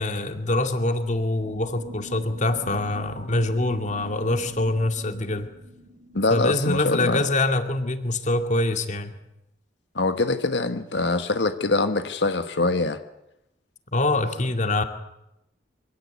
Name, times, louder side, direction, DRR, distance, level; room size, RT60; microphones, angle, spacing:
voice 1, 0.0-5.5 6.3-9.1 13.9-14.8, left 2 dB, 45° left, 7 dB, 2.2 m, -24 dB
sound 1, 1.4-6.4, right 1 dB, 85° right, 6.1 m, -43 dB
voice 2, 6.1-7.2 9.9-13.0, left 3 dB, 90° left, 9 dB, 1.5 m, -24 dB
25.5 x 17.0 x 9.4 m, 0.86 s
head